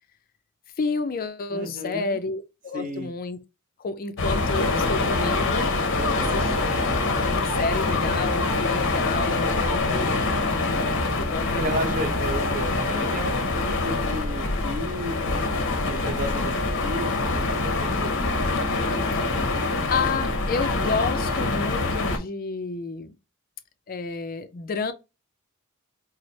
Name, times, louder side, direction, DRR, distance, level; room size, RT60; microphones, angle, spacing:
voice 1, 0.8-3.4 3.8-5.7 6.1-6.5 7.0-10.1 10.9-11.8 19.9-23.1 23.9-24.9, left 4 dB, 45° left, 0.4 m, -30 dB
voice 2, 1.5-2.2 2.7-3.1 6.0-6.6 11.1-13.6 13.8-15.5 15.9-16.5 16.8-18.1, right 1 dB, 40° right, 0.8 m, -33 dB
sound 1, 4.2-22.2, left 3 dB, 60° left, 0.9 m, -25 dB
4.8 x 2.0 x 2.7 m
head